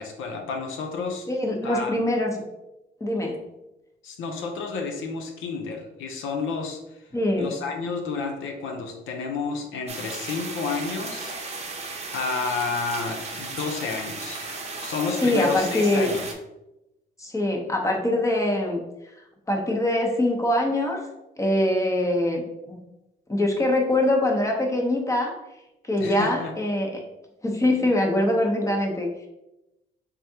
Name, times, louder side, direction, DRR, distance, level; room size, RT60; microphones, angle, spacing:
voice 1, 0.0-1.3 1.6-2.0 4.0-7.0 7.4-11.4 12.1-14.4 14.8-16.2 26.0-26.5, left 4 dB, 85° left, 3 dB, 0.6 m, -30 dB
voice 2, 1.3-2.3 3.0-3.4 7.1-7.5 15.2-16.1 17.2-18.8 19.5-21.0 21.4-22.8 23.3-25.3 25.8-26.9 27.4-29.3, left 1 dB, 15° left, 1 dB, 0.8 m, -23 dB
sound 1, 9.9-16.3, right 3 dB, 35° right, 0.7 m, -35 dB
3.5 x 3.3 x 2.8 m, 0.93 s
cardioid pair, 90°, 20 cm